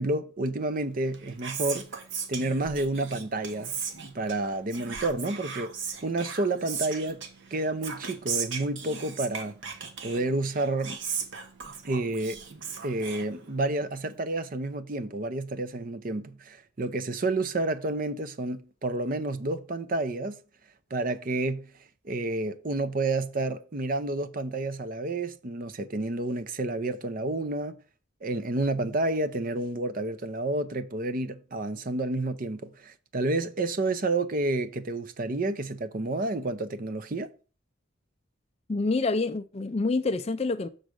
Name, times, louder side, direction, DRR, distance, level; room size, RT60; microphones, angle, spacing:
voice 1, 0.0-1.9 2.3-3.7 4.0-5.7 6.0-7.2 7.5-9.6 10.0-11.0 11.8-12.4 12.8-20.4 20.9-21.7 22.0-27.8 28.2-37.3, right 2 dB, 40° right, 0.5 m, -30 dB
Whispering, 1.0-13.8, right 6 dB, 60° right, 1.1 m, -38 dB
voice 2, 38.7-40.7, left 3 dB, 30° left, 0.4 m, -27 dB
6.3 x 3.9 x 6.3 m
head